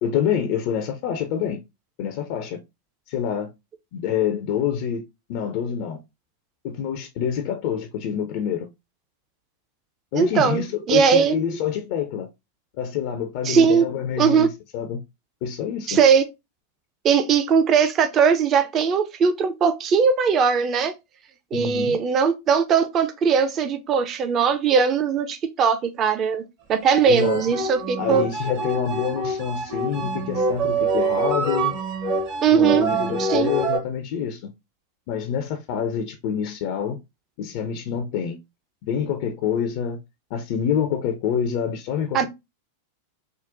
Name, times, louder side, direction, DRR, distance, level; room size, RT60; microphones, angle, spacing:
voice 1, 0.0-1.6 2.0-2.6 3.1-3.5 3.9-5.0 5.3-6.0 6.6-8.7 10.1-12.3 12.8-15.0 15.4-16.0 21.5-22.0 27.1-27.4 28.0-31.7 32.5-34.5 35.1-37.0 37.4-38.4 38.8-40.0 40.3-42.2, left 8 dB, 45° left, 0.4 m, -26 dB
voice 2, 10.1-11.3 13.4-13.9 14.2-14.5 15.9-16.2 17.0-20.9 21.5-26.4 26.7-28.2 32.4-32.9 33.2-33.5 42.1-42.2, right 6 dB, 30° right, 0.4 m, -19 dB
sound 1, 26.8-33.8, right 3 dB, 45° right, 0.8 m, -26 dB
3.7 x 2.1 x 2.4 m
figure-of-eight pair, 90°, 0 cm